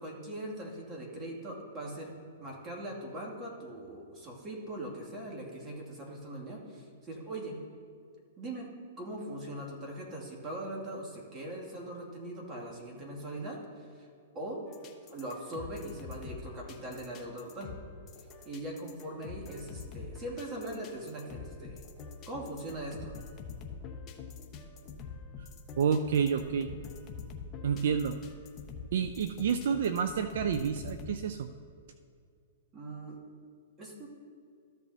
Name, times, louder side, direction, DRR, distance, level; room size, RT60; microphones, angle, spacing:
voice 1, 0.0-2.1 2.4-7.6 8.4-8.7 9.0-14.1 14.3-14.6 15.1-17.7 18.4-21.8 22.3-23.1 32.7-33.2 33.8-34.1, right 1 dB, 25° right, -3 dB, 2.4 m, -41 dB
sound 1, 14.7-31.1, left 5 dB, 25° left, 1.0 m, -46 dB
voice 2, 25.8-26.7 27.6-28.2 28.9-31.5, right 7 dB, 70° right, 10 dB, 0.4 m, -29 dB
14.0 x 7.3 x 2.8 m, 2.3 s
hypercardioid pair, 130°, 0 cm